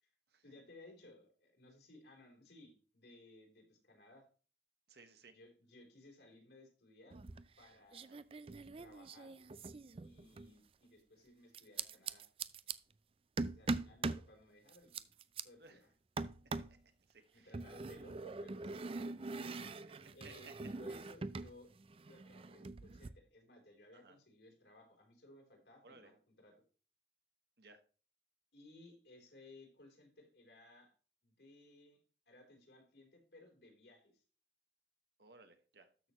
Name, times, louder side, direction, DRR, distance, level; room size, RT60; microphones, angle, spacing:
voice 1, 0.4-4.3 5.3-7.2 7.6-8.1 8.4-9.3 10.0-12.3 13.5-15.1 15.4-15.9 17.3-18.7 19.0-19.7 20.1-21.7 22.1-26.6 28.5-30.9 31.2-32.0 32.3-34.2, left 2 dB, 75° left, 2 dB, 3.7 m, -60 dB
voice 2, 4.9-5.3 8.0-8.2 15.6-15.8 16.7-16.8 17.1-17.6 19.6-19.8 20.2-20.3 23.9-24.2 25.8-26.1 27.6-27.8 35.2-35.9, right 3 dB, 65° right, 8 dB, 1.4 m, -60 dB
sound 1, 7.1-7.6 7.9-10.5 11.5-12.7 13.4-14.3 14.7-15.4 16.2-16.8 17.5-21.5 21.8-23.1, right 3 dB, 30° right, 0.4 m, -42 dB
13.0 x 6.5 x 3.0 m, 0.38 s
head